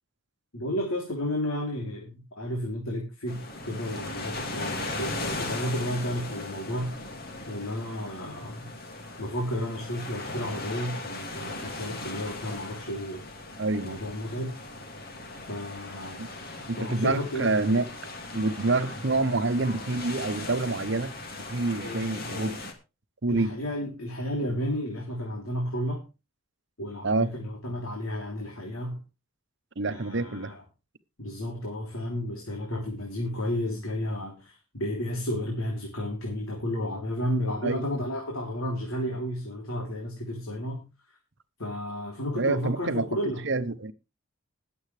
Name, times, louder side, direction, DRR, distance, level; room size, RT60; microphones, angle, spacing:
voice 1, 0.5-7.0 7.5-8.7 9.2-13.2 13.8-14.6 15.5-16.2 16.8-17.5 21.8-22.6 23.3-26.0 26.8-29.0 29.8-30.6 31.2-40.9 41.6-43.4, equal, 80° left, 3.3 m, -32 dB
sound 1, 3.3-22.7, left 2 dB, 45° left, 2.4 m, -38 dB
voice 2, 13.6-14.0 16.2-16.3 16.7-17.9 18.3-21.1 21.5-22.7 23.2-23.6 27.0-27.3 29.8-30.5 37.6-37.8 42.3-43.1 43.4-43.9, right 3 dB, 55° right, 1.0 m, -27 dB
21.0 x 7.9 x 3.3 m
head